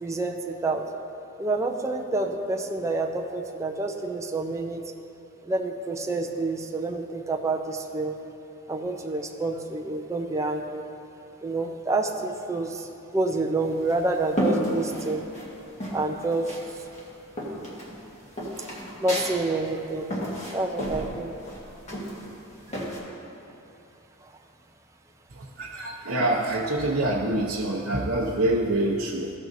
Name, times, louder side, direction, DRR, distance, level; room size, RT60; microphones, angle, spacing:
voice 1, 0.0-0.9 1.4-4.8 5.4-8.1 8.7-10.8 11.4-15.2 15.9-16.5 19.0-20.1 20.5-21.4, right 2 dB, 15° right, 2 dB, 0.5 m, -28 dB
sound 1, 13.6-15.5 15.8-16.7 16.9-23.0, equal, 35° left, 1.6 m, -32 dB
voice 2, 25.3-29.3, right 1 dB, 85° right, -6 dB, 0.8 m, -26 dB
15.0 x 6.1 x 2.7 m, 2.8 s
head